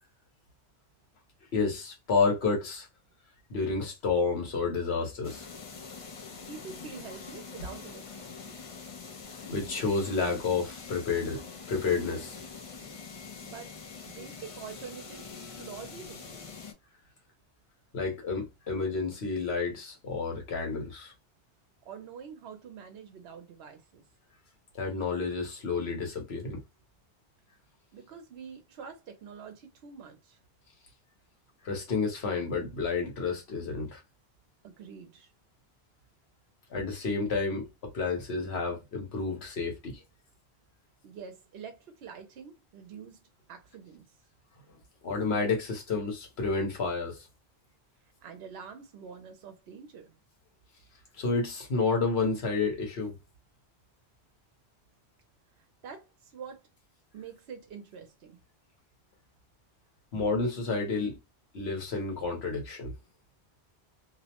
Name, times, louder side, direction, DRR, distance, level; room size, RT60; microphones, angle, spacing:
voice 1, 1.5-2.9 3.5-5.5 9.4-12.4 17.9-21.1 24.7-26.6 31.6-34.0 36.7-40.0 45.0-47.3 51.1-53.1 60.1-61.2 61.5-62.9, left 4 dB, 75° left, 1.2 m, -30 dB
sound 1, 5.2-16.7, left 5 dB, 45° left, 0.5 m, -44 dB
voice 2, 6.5-8.6 13.4-16.4 21.8-24.0 27.9-30.4 34.6-35.3 41.0-43.2 43.5-44.1 48.2-50.2 55.6-56.7 57.1-58.4, right 6 dB, 75° right, 0.8 m, -46 dB
2.7 x 2.0 x 2.8 m
omnidirectional pair, 1.1 m